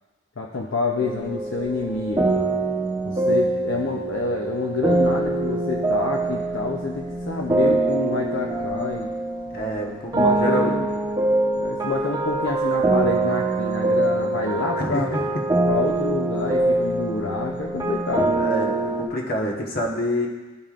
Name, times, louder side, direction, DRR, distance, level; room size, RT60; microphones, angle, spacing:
voice 1, 0.4-2.3 3.1-9.1 10.1-10.9 11.5-15.1 15.7-18.4, left 3 dB, 65° left, 0 dB, 0.6 m, -27 dB
sound 1, 1.0-9.8 10.1-19.1, right 2 dB, 20° right, 0.9 m, -24 dB
voice 2, 9.5-10.8 14.8-15.4 18.4-20.3, left 1 dB, 50° left, -1 dB, 1.2 m, -27 dB
14.5 x 5.4 x 2.5 m, 1.2 s
head